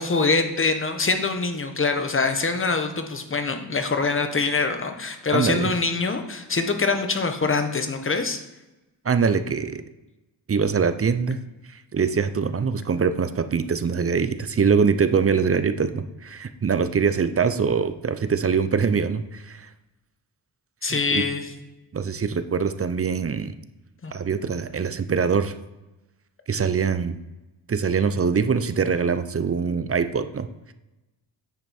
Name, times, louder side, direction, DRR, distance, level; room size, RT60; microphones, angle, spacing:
voice 1, 0.0-8.4 20.8-21.5 24.0-24.1, left 4 dB, 30° left, 6 dB, 1.2 m, -24 dB
voice 2, 5.3-5.7 9.0-9.8 10.5-11.4 11.7-19.7 20.9-21.2 21.9-23.5 24.1-25.5 26.5-27.2 27.7-30.5, right 6 dB, 30° right, 11 dB, 0.6 m, -23 dB
9.5 x 5.2 x 4.4 m, 1.0 s
cardioid pair, 85°, 45 cm